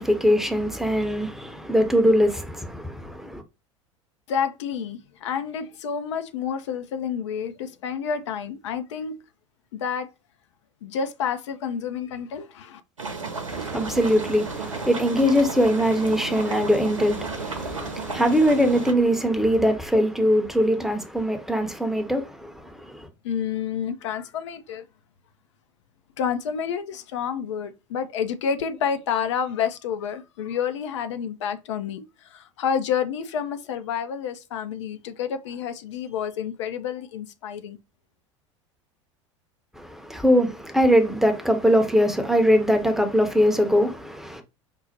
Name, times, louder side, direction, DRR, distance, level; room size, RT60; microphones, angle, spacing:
voice 1, 0.0-3.4 13.5-23.1 39.8-44.4, equal, ahead, 0.7 m, -22 dB
voice 2, 4.3-9.2 9.7-10.1 10.8-12.8 23.2-24.9 26.2-37.8, left 7 dB, 65° left, 0.4 m, -29 dB
sound 1, 13.0-18.9, right 4 dB, 85° right, 0.8 m, -33 dB
5.1 x 2.1 x 2.8 m
figure-of-eight pair, 75°, 16 cm